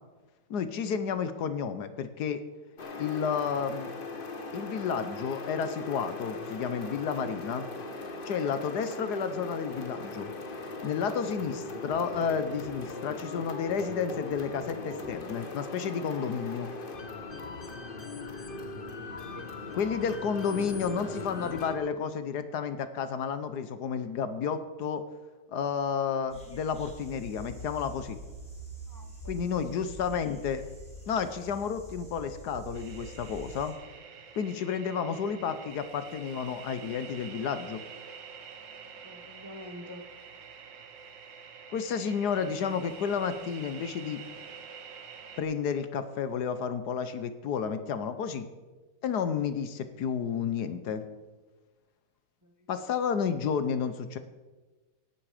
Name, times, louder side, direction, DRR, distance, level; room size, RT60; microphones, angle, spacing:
voice 1, 0.5-2.4 2.9-3.9 4.5-7.7 8.2-10.3 10.8-16.7 19.7-25.0 25.5-28.2 29.3-30.6 31.1-33.7 34.3-37.8 41.7-44.2 45.4-48.5 49.0-51.0 52.7-54.2, left 6 dB, 65° left, 11 dB, 1.3 m, -31 dB
sound 1, 2.8-21.8, left 2 dB, 35° left, 1.1 m, -39 dB
sound 2, 26.3-33.7, right 1 dB, 5° left, 3.5 m, -45 dB
voice 2, 28.9-29.5 39.0-40.0 52.4-52.7, left 1 dB, 20° right, 5 dB, 0.5 m, -47 dB
sound 3, 32.7-45.4, right 6 dB, 75° right, 1.9 m, -47 dB
17.5 x 8.8 x 5.0 m, 1.2 s
omnidirectional pair, 2.0 m